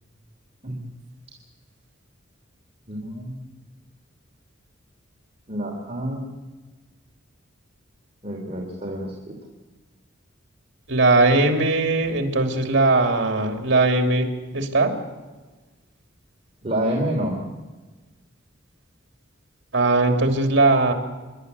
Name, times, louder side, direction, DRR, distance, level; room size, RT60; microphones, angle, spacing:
voice 1, 2.9-3.5 5.5-6.3 8.2-9.4 16.6-17.4, right 1 dB, 30° right, -2 dB, 3.3 m, -28 dB
voice 2, 10.9-14.3 14.5-14.9 19.7-20.9, right 2 dB, 60° right, 4 dB, 3.0 m, -19 dB
26.5 x 12.0 x 9.7 m, 1.3 s
head